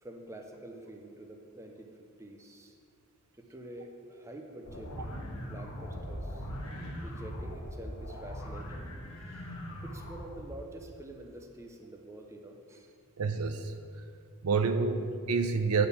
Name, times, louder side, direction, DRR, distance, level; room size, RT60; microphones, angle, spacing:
voice 1, 0.0-2.8 3.4-5.0 5.3-6.5 7.0-8.9 9.3-9.4 9.8-12.9, right 1 dB, 15° right, 2 dB, 0.7 m, -47 dB
sound 1, 4.6-10.4, equal, 75° left, 1.5 m, -40 dB
voice 2, 13.2-13.7 14.4-15.9, right 4 dB, 80° right, 8 dB, 0.6 m, -28 dB
8.8 x 4.8 x 6.8 m, 2.2 s
head